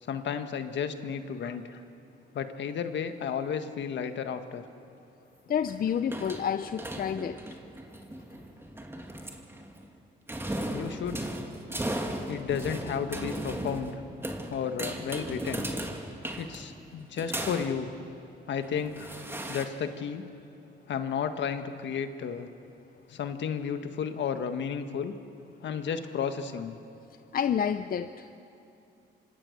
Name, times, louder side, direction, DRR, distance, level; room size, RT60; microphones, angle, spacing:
voice 1, 0.1-1.8 2.3-4.6 10.7-11.3 12.3-13.9 14.5-15.7 16.4-17.9 18.5-19.1 19.5-20.2 20.9-22.5 23.1-25.1 25.6-26.8, left 7 dB, 65° left, 8 dB, 1.6 m, -33 dB
voice 2, 5.5-7.4 27.3-28.4, left 8 dB, 45° left, 10 dB, 0.7 m, -29 dB
sound 1, 5.5-10.0 10.3-17.9 18.6-19.7, right 1 dB, 10° right, 2.5 m, -37 dB
26.5 x 25.0 x 6.7 m, 2.7 s
cardioid pair, 90°, 20 cm